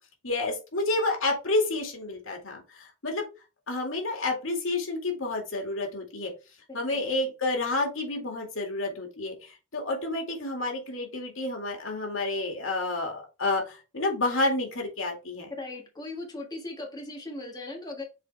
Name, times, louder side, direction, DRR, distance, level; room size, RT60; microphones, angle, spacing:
voice 1, 0.2-3.3 3.7-6.3 6.7-15.5, left 2 dB, 85° left, 2 dB, 2.2 m, -30 dB
voice 2, 6.7-7.0 15.6-18.0, left 2 dB, 20° left, -1 dB, 1.6 m, -38 dB
7.3 x 3.9 x 3.3 m, 0.29 s
head